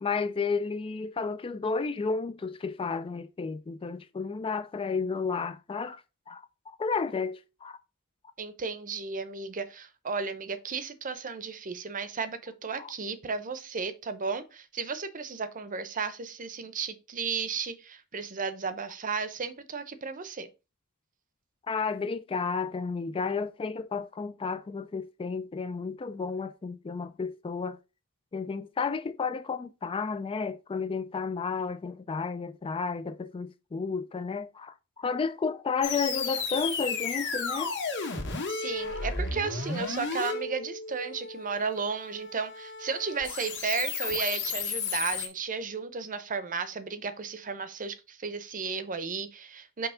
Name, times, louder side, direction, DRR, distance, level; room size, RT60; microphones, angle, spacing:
voice 1, 0.0-6.0 6.3-7.8 12.8-12.9 21.7-27.8 28.3-37.7, left 5 dB, 25° left, 0.3 m, -32 dB
voice 2, 8.4-20.5 38.5-49.9, right 5 dB, 40° right, 0.7 m, -34 dB
sound 1, 35.8-45.3, left 5 dB, 55° left, 1.7 m, -33 dB
5.5 x 3.4 x 5.6 m
head